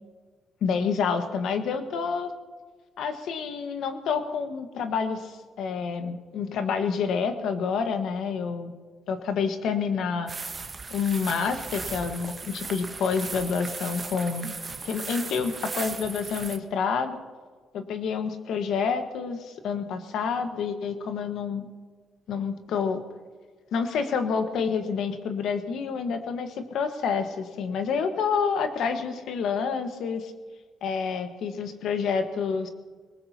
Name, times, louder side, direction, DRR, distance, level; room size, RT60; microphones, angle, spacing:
voice 1, 0.6-2.3 3.0-8.7 9.1-10.3 10.9-14.6 14.8-17.2 17.7-21.7 22.3-23.0 23.7-30.3 30.8-32.7, left 6 dB, 75° left, 7 dB, 1.4 m, -28 dB
sound 1, 10.3-16.6, right 4 dB, 30° right, 1.2 m, -37 dB
21.5 x 19.5 x 2.9 m, 1.5 s
cardioid pair, 90°, 0 cm